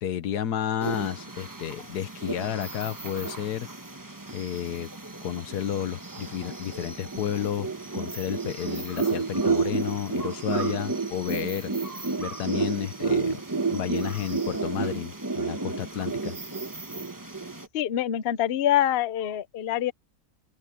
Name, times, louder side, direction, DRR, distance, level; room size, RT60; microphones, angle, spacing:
voice 1, 0.0-3.7 4.3-4.9 5.2-11.7 12.2-13.4 13.7-16.3, left 10 dB, 80° left, 1.5 m, -31 dB
sound 1, 0.8-17.7, right 4 dB, 15° right, 1.0 m, -31 dB
voice 2, 17.7-19.9, left 11 dB, 50° left, 0.8 m, -25 dB
open air
omnidirectional pair, 1.7 m